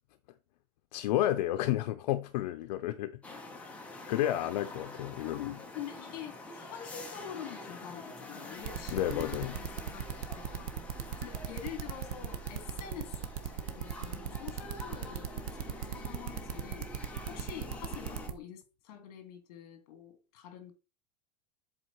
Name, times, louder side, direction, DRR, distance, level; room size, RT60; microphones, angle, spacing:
voice 1, 0.9-3.4 4.1-5.5 8.9-9.5, left 13 dB, 80° left, 0.6 m, -31 dB
sound 1, 3.2-18.3, left 2 dB, 5° left, 0.9 m, -46 dB
voice 2, 5.2-10.0 10.3-10.7 11.2-16.9 17.3-20.7, left 9 dB, 60° left, 2.1 m, -46 dB
sound 2, 8.6-18.3, right 9 dB, 55° right, 1.0 m, -37 dB
7.8 x 4.2 x 4.4 m
supercardioid pair, 175°, 21 cm